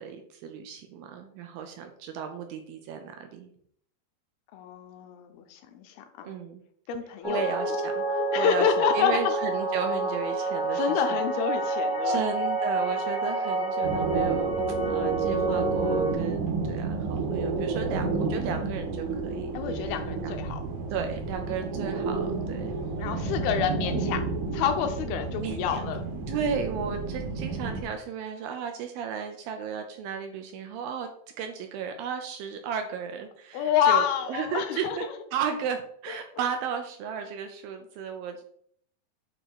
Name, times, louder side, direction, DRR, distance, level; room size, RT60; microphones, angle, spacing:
voice 1, 0.0-3.5 6.2-6.6 7.2-11.2 11.7-11.8 12.0-14.6 14.9-19.5 19.8-19.9 20.2-20.4 20.9-22.8 23.2-23.3 25.4-25.9 26.3-31.1 31.4-35.1 35.3-38.4, right 7 dB, 85° right, 5 dB, 2.2 m, -34 dB
voice 2, 4.5-6.3 6.9-7.4 8.3-9.3 10.4-12.3 19.5-20.6 23.0-24.2 24.5-26.1 33.5-35.1 36.1-36.2, left 9 dB, 80° left, 7 dB, 2.4 m, -28 dB
sound 1, 7.2-16.1, right 2 dB, 35° left, 0.8 m, -28 dB
sound 2, 13.8-27.8, right 3 dB, 65° right, 2.1 m, -31 dB
8.8 x 3.0 x 4.6 m, 0.63 s
omnidirectional pair, 4.6 m